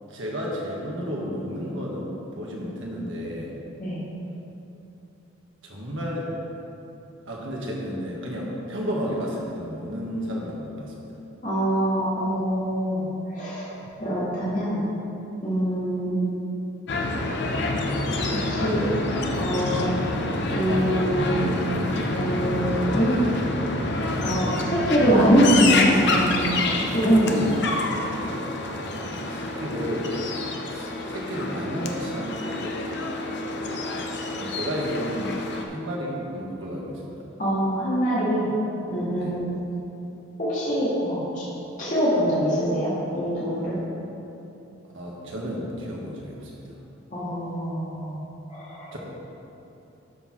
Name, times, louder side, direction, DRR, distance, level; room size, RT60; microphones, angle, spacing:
voice 1, 0.1-3.5 5.6-6.3 7.2-10.9 29.3-30.1 30.7-32.8 34.4-35.4 35.6-37.2 39.2-39.3 44.9-46.6 48.9-49.0, equal, 70° right, -3 dB, 1.6 m, -32 dB
voice 2, 11.4-13.0 13.3-13.7 14.0-14.8 15.4-16.3 18.3-18.9 19.4-19.9 20.5-21.5 22.1-23.1 24.2-26.3 26.9-27.6 37.4-38.5 38.9-39.4 40.4-41.4 41.8-43.8 47.1-48.2 48.5-49.0, equal, 40° left, -9 dB, 1.8 m, -23 dB
sound 1, 16.9-35.6, left 2 dB, 55° left, 0.7 m, -27 dB
12.0 x 4.6 x 4.3 m, 2.9 s
head